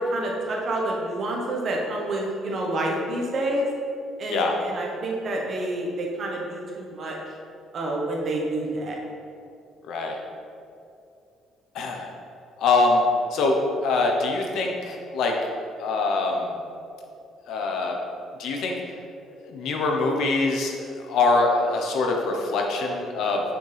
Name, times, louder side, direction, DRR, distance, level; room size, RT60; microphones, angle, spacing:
voice 1, 0.0-3.7 4.2-7.4 7.7-9.0, right 1 dB, 40° right, -1 dB, 1.3 m, -28 dB
voice 2, 9.8-10.2 11.7-12.1 12.6-13.0 13.3-15.4 15.8-16.6 17.5-17.9 18.4-18.7 19.4-23.5, left 3 dB, 65° left, 2 dB, 1.0 m, -24 dB
8.3 x 6.2 x 3.5 m, 2.5 s
cardioid pair, 145°, 0 cm